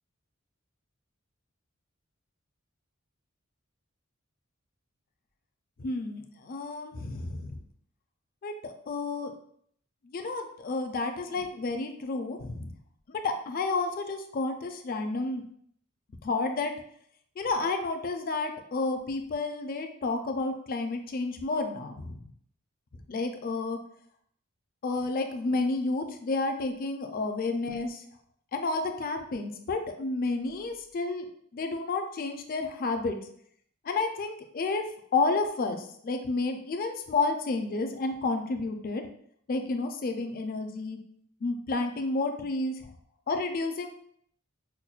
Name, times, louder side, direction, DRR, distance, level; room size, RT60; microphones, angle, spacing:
voice 1, 5.8-7.6 8.4-9.3 10.1-12.7 13.1-15.4 16.2-16.7 17.4-22.2 23.1-23.8 24.8-28.0 28.5-31.3 31.5-33.2 33.8-34.9 35.1-39.0 39.5-41.0 41.4-42.7 43.3-43.9, left 3 dB, 45° left, 5 dB, 0.4 m, -30 dB
5.7 x 2.1 x 2.4 m, 0.66 s
head